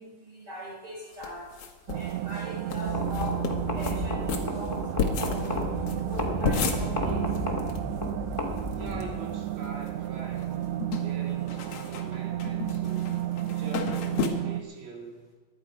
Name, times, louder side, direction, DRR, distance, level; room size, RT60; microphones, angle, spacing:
voice 1, 0.0-1.6 1.9-3.4 3.7-4.8 5.2-7.3, left 1 dB, 30° right, -4 dB, 6.3 m, -40 dB
sound 1, 1.2-2.1 2.4-2.5 2.7-2.8 3.1-3.9 4.3-8.1 8.3-9.0 9.4-10.1 10.4-14.3, left 6 dB, 85° left, 1.3 m, -33 dB
sound 2, 1.9-14.6, right 13 dB, 85° right, 2.8 m, -32 dB
sound 3, 2.8-9.2, left 1 dB, 50° left, 0.3 m, -33 dB
voice 2, 8.8-10.6 11.0-13.1 13.5-15.2, right 3 dB, 55° right, 0 dB, 3.7 m, -43 dB
21.0 x 10.5 x 5.1 m, 1.4 s
omnidirectional pair, 5.0 m